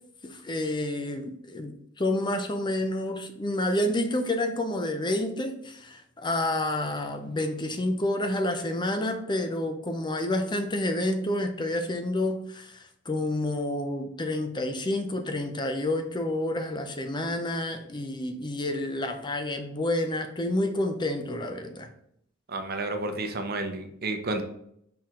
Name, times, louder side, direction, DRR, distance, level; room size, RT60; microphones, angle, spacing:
voice 1, 0.2-21.9, left 1 dB, 25° left, 6 dB, 0.6 m, -29 dB
voice 2, 22.5-24.4, right 2 dB, 50° right, 6 dB, 0.8 m, -31 dB
5.6 x 4.6 x 3.7 m, 0.71 s
head